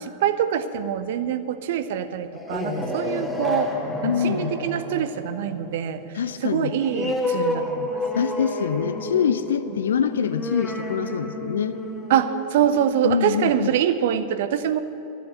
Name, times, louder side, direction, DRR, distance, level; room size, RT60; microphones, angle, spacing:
voice 1, 0.0-3.8 4.0-8.0 9.7-9.8 12.1-14.8, right 9 dB, 55° right, 12 dB, 0.6 m, -25 dB
sound 1, 2.2-13.4, left 1 dB, 5° left, 1.6 m, -30 dB
voice 2, 4.0-4.5 6.1-6.7 8.1-11.8 13.0-13.7, left 8 dB, 65° left, 12 dB, 0.5 m, -25 dB
13.0 x 8.2 x 8.5 m, 2.7 s
figure-of-eight pair, 90°, 0 cm